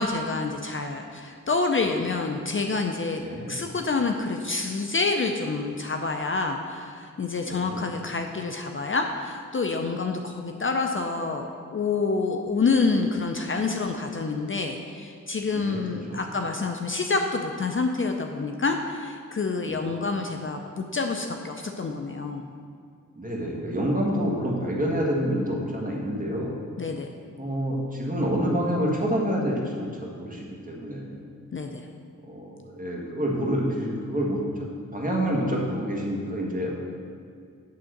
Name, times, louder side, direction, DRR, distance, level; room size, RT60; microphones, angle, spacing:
voice 1, 0.0-3.2 3.5-11.4 11.7-22.5 26.8-27.1 31.5-31.9, left 4 dB, 40° left, 4 dB, 0.5 m, -27 dB
voice 2, 3.2-3.6 7.5-7.9 15.5-15.8 16.1-16.2 19.7-20.0 23.1-26.5 27.4-31.2 32.3-36.7, equal, 25° right, -2 dB, 1.5 m, -28 dB
8.6 x 3.7 x 6.5 m, 2.2 s
wide cardioid pair, 75°, 32 cm